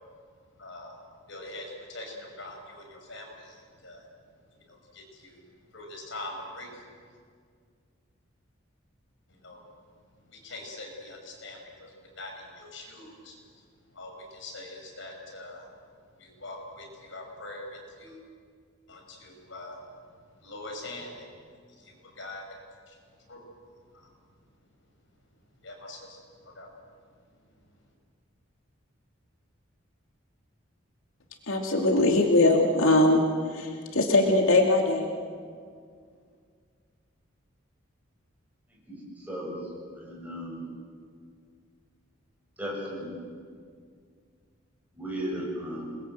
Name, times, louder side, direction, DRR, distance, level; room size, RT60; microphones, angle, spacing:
voice 1, 0.4-4.1 4.6-7.2 9.3-9.7 10.2-15.7 16.1-18.2 18.9-22.5 22.9-23.5 23.8-24.1 25.6-26.7 27.6-27.9, left 2 dB, 65° left, 1 dB, 5.9 m, -44 dB
voice 2, 31.5-33.2 33.5-35.1, left 2 dB, 80° left, 2 dB, 2.5 m, -21 dB
voice 3, 38.9-39.6 40.0-40.6 42.6-43.1 45.0-45.8, equal, 10° right, -4 dB, 7.8 m, -35 dB
28.0 x 21.5 x 8.0 m, 2.1 s
head